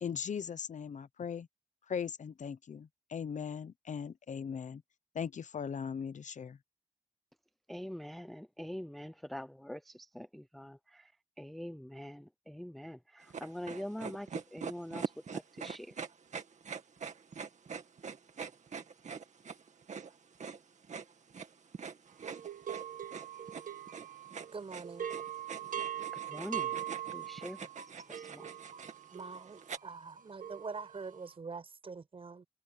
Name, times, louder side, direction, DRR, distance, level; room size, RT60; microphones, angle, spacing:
voice 1, 0.0-1.5 1.9-4.8 5.1-6.6, left 7 dB, 60° left, 0.8 m, -39 dB
voice 2, 7.7-11.1 11.4-15.9 26.3-26.7 27.1-27.7 28.1-28.5, equal, ahead, 0.4 m, -44 dB
sound 1, 13.3-29.8, right 6 dB, 60° right, 2.2 m, -44 dB
sound 2, 22.2-24.6 24.8-31.2, right 11 dB, 75° right, 1.9 m, -41 dB
voice 3, 24.5-25.1 29.1-32.5, right 4 dB, 40° right, 6.2 m, -44 dB
wide cardioid pair, 165°, 14 cm